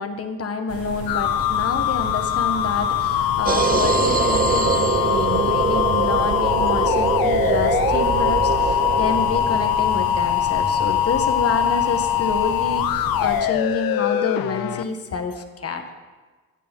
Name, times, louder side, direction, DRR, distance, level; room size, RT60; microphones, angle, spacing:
voice 1, 0.0-15.8, left 4 dB, 40° left, 6 dB, 1.3 m, -28 dB
sound 1, 0.7-13.4, right 3 dB, 55° right, 2.9 m, -34 dB
sound 2, 1.1-14.8, left 11 dB, 80° left, 0.6 m, -22 dB
sound 3, 3.5-10.1, right 6 dB, 25° right, 0.4 m, -23 dB
16.0 x 6.8 x 5.3 m, 1.3 s
cardioid pair, 85°, 35 cm